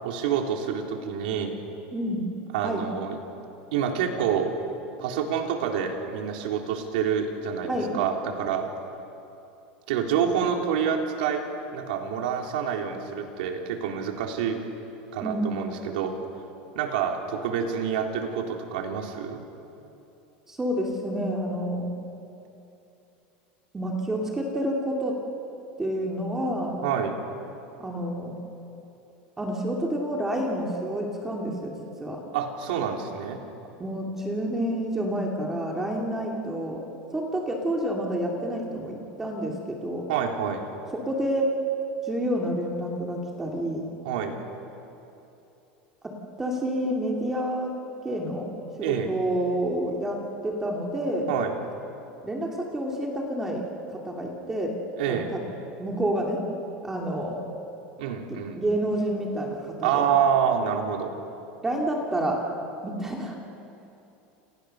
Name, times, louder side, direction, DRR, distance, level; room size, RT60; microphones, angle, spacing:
voice 1, 0.0-1.6 2.5-3.2 3.7-4.5 5.0-8.7 9.9-11.5 11.7-14.6 15.1-16.2 16.7-19.4 26.8-27.2 32.3-33.4 40.1-40.6 44.0-44.3 48.8-49.1 51.3-51.5 55.0-55.3 58.0-58.6 59.8-61.1, right 7 dB, 70° right, 2 dB, 4.0 m, -27 dB
voice 2, 1.9-2.2 2.6-2.9 7.7-7.9 15.2-15.5 20.5-21.9 23.7-25.1 25.8-26.8 27.8-28.4 29.4-31.7 32.0-32.2 33.8-36.8 37.1-40.1 40.9-41.5 42.0-43.8 46.0-46.1 46.4-47.7 48.0-48.5 48.8-51.3 52.2-53.6 53.9-54.7 55.1-55.4 55.8-56.4 56.8-57.4 58.6-60.1 61.6-62.5 62.8-63.4, right 1 dB, 10° right, 0 dB, 2.4 m, -29 dB
29.5 x 29.0 x 6.7 m, 2.9 s
supercardioid pair, 175°, 5 cm